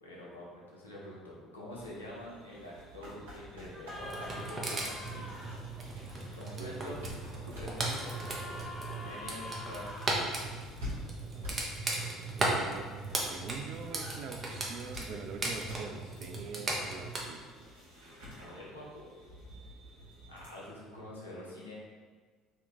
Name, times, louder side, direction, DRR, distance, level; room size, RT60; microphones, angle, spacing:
voice 1, 0.0-5.7 6.4-7.0 7.4-8.0 9.0-10.5 18.3-19.1 20.3-21.7, left 1 dB, 85° left, -5 dB, 0.8 m, -46 dB
sound 1, 1.7-20.5, left 1 dB, 80° right, 1.1 m, -49 dB
sound 2, 3.7-5.5 7.7-10.1 13.8-14.2, left 1 dB, 15° left, 1.1 m, -45 dB
sound 3, 4.0-17.2, right 2 dB, 30° right, 0.9 m, -37 dB
voice 2, 6.6-7.1 12.3-12.9 13.2-17.4, right 5 dB, 55° right, 5 dB, 0.4 m, -44 dB
3.1 x 2.7 x 4.1 m, 1.5 s
figure-of-eight pair, 60°, 0 cm